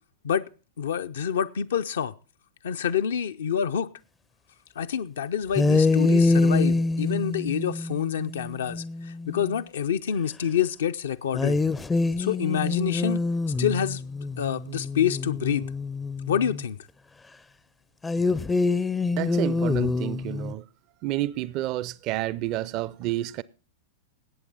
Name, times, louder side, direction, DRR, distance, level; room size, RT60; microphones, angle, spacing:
voice 1, 0.8-2.1 2.6-3.9 4.8-11.6 12.2-13.2 13.6-14.0 14.4-15.7 16.3-16.8, left 8 dB, 60° left, 0.6 m, -27 dB
sound 1, 5.5-9.5 11.3-16.6 18.0-20.5, left 3 dB, 10° left, 0.5 m, -25 dB
voice 2, 19.2-20.6 21.0-23.4, right 15 dB, 40° right, 0.5 m, -29 dB
18.5 x 8.2 x 3.9 m
figure-of-eight pair, 95°, 0 cm